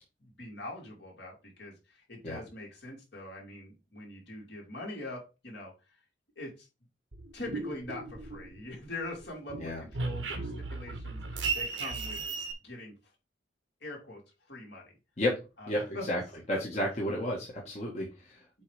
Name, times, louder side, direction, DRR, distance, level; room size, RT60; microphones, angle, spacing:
voice 1, 0.2-6.0 6.3-6.7 7.3-12.2 12.6-12.9 13.8-14.2 14.5-14.9 15.6-16.0 16.5-16.8 18.5-18.6, left 2 dB, 65° left, -2 dB, 3.5 m, -43 dB
sound 1, 7.1-8.8 9.1-12.5, right 4 dB, 90° right, 1.4 m, -36 dB
voice 2, 16.5-18.4, left 1 dB, 35° left, -4 dB, 1.6 m, -31 dB
7.9 x 3.2 x 5.1 m, 0.29 s
head